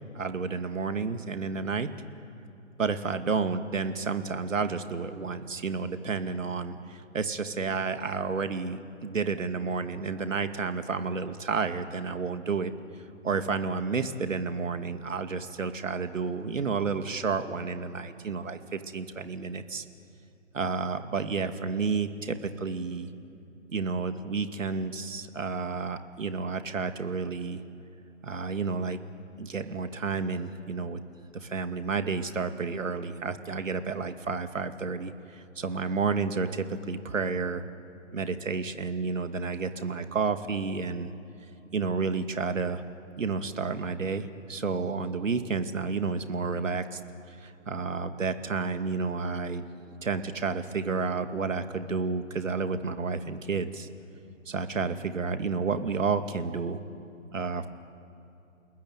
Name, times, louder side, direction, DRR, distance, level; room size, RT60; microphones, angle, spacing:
voice 1, 0.1-1.9 2.8-12.7 13.2-19.8 20.5-23.1 23.7-27.6 28.2-29.0 29.4-31.0 31.3-37.6 38.1-41.1 41.7-42.8 43.2-47.0 47.3-53.9 54.5-56.8 57.3-57.7, right 4 dB, 75° right, 8 dB, 2.4 m, -31 dB
30.0 x 19.5 x 9.2 m, 2.9 s
hypercardioid pair, 160°, 39 cm